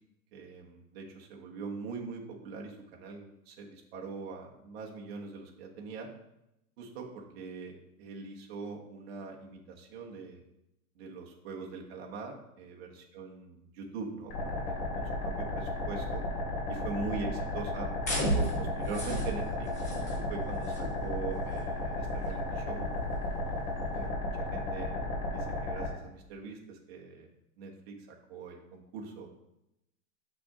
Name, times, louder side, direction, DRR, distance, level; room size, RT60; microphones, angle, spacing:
voice 1, 0.3-6.1 6.8-10.4 11.0-12.9 13.1-16.2 16.7-19.7 20.3-22.9 23.4-24.9 25.3-27.3 27.6-29.3, right 4 dB, 40° right, 0 dB, 1.4 m, -42 dB
sound 1, 14.3-25.9, left 2 dB, 40° left, 2.8 m, -34 dB
sound 2, 18.0-24.1, right 1 dB, 15° left, 0.3 m, -36 dB
6.9 x 6.1 x 3.7 m, 0.85 s
supercardioid pair, 170°, 45 cm